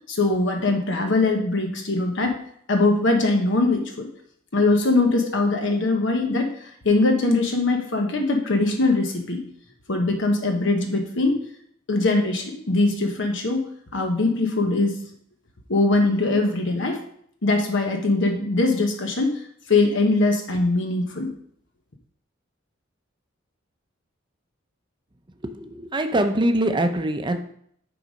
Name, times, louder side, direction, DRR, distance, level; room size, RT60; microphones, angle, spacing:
voice 1, 0.1-2.4 2.7-4.1 4.5-9.4 9.9-11.4 11.9-15.0 15.7-17.0 17.4-19.4 19.7-21.3, left 2 dB, 70° left, 3 dB, 1.1 m, -22 dB
voice 2, 25.5-27.4, right 1 dB, 25° right, 7 dB, 0.7 m, -23 dB
8.3 x 4.0 x 5.1 m, 0.65 s
head